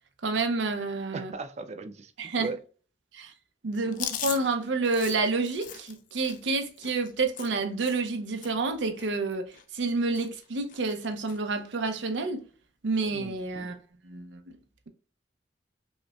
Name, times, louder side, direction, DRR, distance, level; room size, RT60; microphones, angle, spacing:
voice 1, 0.2-1.3 2.2-2.5 3.1-3.3 3.6-9.4 9.7-12.5 12.8-13.7 14.0-14.4, right 3 dB, 90° right, 0.6 m, -29 dB
voice 2, 1.1-2.6 13.5-13.7, right 3 dB, 40° right, 0.4 m, -37 dB
Chewing mastication, 3.9-8.2 8.4-8.7 9.0-9.9 10.1-10.4 10.7-11.4 11.8-11.9 13.0-13.4, left 10 dB, 45° left, 0.4 m, -40 dB
5.1 x 2.1 x 2.2 m
head